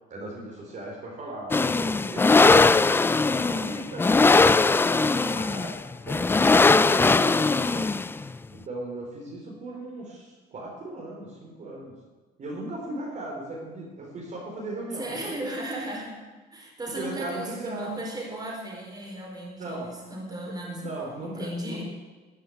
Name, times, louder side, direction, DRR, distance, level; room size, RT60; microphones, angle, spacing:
voice 1, 0.0-5.7 6.0-8.0 8.5-12.0 12.4-15.3 16.9-17.9 19.6-19.9 20.5-21.8, right 2 dB, 45° right, -2 dB, 3.9 m, -38 dB
sound 1, 1.5-8.3, left 3 dB, 15° left, 0.4 m, -20 dB
voice 2, 15.0-16.1 16.5-20.9 21.2-21.8, right 1 dB, 25° right, -2 dB, 4.9 m, -36 dB
13.5 x 7.7 x 9.2 m, 1.3 s
cardioid pair, 110°, 17 cm